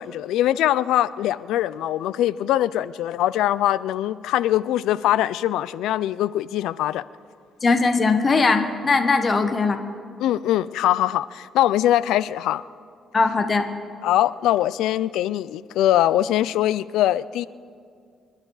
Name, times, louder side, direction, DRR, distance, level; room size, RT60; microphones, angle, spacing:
voice 1, 0.0-7.0 10.2-12.6 14.0-17.5, left 13 dB, 90° left, 18 dB, 0.3 m, -22 dB
voice 2, 7.6-9.8 13.1-13.7, left 4 dB, 35° left, 8 dB, 1.2 m, -20 dB
25.5 x 11.5 x 4.0 m, 2.3 s
cardioid pair, 90°, 0 cm